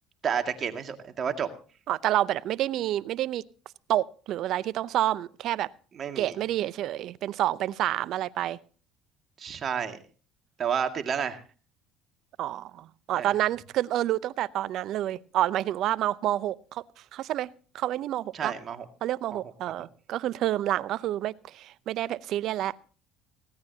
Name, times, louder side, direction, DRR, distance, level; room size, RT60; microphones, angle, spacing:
voice 1, 0.2-1.5 6.0-6.3 9.4-10.0 10.6-11.4 13.2-13.3 18.3-18.8, right 7 dB, 45° right, 6 dB, 2.0 m, -30 dB
voice 2, 1.9-3.4 3.9-5.7 6.2-8.6 12.4-16.8 17.1-18.5 19.0-22.7, right 13 dB, 60° right, 19 dB, 0.6 m, -28 dB
19.0 x 16.5 x 2.8 m, 0.38 s
hypercardioid pair, 75°, 0 cm